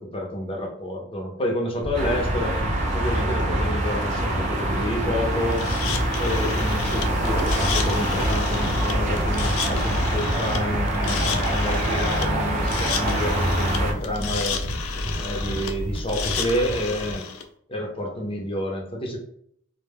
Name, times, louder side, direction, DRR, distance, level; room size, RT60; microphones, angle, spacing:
voice 1, 0.0-2.6 2.9-5.7 6.2-14.6 15.2-17.3 17.7-19.2, left 1 dB, 25° left, 0 dB, 0.5 m, -29 dB
sound 1, 1.8-17.2, equal, 70° left, 0.8 m, -34 dB
sound 2, 1.9-13.9, right 1 dB, 35° right, 0.5 m, -24 dB
sound 3, 5.5-17.4, left 6 dB, 85° left, 0.4 m, -32 dB
2.1 x 2.1 x 3.3 m, 0.67 s
head